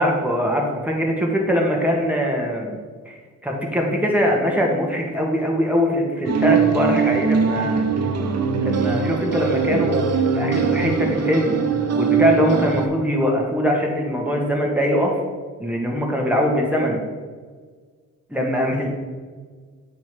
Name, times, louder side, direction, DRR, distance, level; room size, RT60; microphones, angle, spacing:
voice 1, 0.0-3.2 3.4-7.8 8.6-10.0 10.3-11.5 12.0-15.2 15.6-17.0 18.3-18.9, equal, 5° right, -1 dB, 2.0 m, -22 dB
sound 1, 6.2-12.9, right 6 dB, 50° right, 1.0 m, -21 dB
7.7 x 3.7 x 6.0 m, 1.6 s
supercardioid pair, 70°, 33 cm